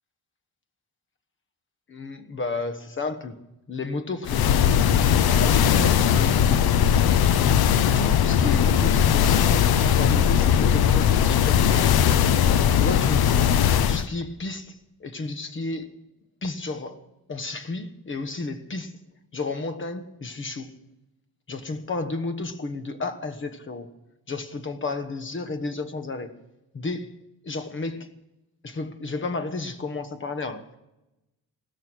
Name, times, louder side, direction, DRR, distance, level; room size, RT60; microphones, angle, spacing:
voice 1, 1.9-3.4 3.7-4.5 5.4-6.6 7.9-12.0 12.8-13.5 13.9-15.9 16.4-18.9 19.3-20.7 21.5-23.9 24.3-26.3 26.7-27.2 27.4-28.1 28.6-30.8, left 3 dB, 30° left, 1.3 m, -32 dB
sound 1, 4.3-14.1, left 9 dB, 80° left, 0.8 m, -19 dB
17.0 x 13.5 x 6.3 m
wide cardioid pair, 155°, 37 cm